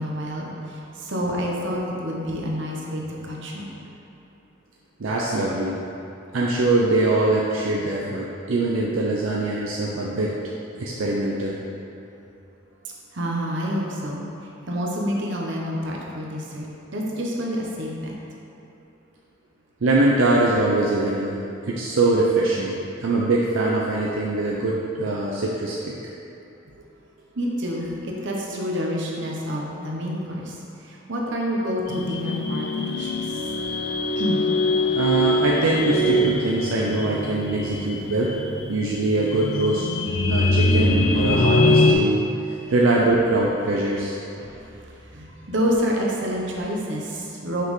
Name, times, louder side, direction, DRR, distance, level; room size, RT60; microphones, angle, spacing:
voice 1, 0.0-3.7 13.1-14.2 14.7-16.7 16.9-18.1 27.3-33.4 34.2-34.5 43.9-44.0 44.4-44.8 45.1-47.6, equal, 60° right, -2 dB, 0.9 m, -28 dB
voice 2, 5.0-5.8 6.3-10.3 10.8-11.6 19.8-21.3 21.7-25.9 35.0-38.3 38.7-39.9 40.3-42.2 42.7-44.2, right 2 dB, 80° right, -4 dB, 0.5 m, -22 dB
sound 1, 31.9-41.9, left 1 dB, 55° left, 0.4 m, -23 dB
5.9 x 5.3 x 3.2 m, 2.9 s
head